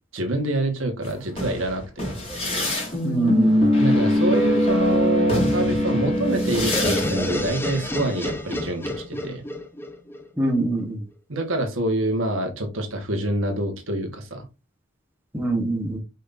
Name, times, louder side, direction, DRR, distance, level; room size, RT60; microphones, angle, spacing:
voice 1, 0.1-2.2 3.8-9.4 11.3-14.4, right 1 dB, 70° right, 1.7 m, -26 dB
sound 1, 1.0-7.5, left 1 dB, 30° left, 2.8 m, -22 dB
voice 2, 3.0-3.7 10.4-11.0 15.3-16.0, right 2 dB, 10° right, 1.3 m, -24 dB
sound 2, 6.7-10.5, left 1 dB, 10° left, 0.9 m, -29 dB
6.3 x 5.4 x 2.7 m
head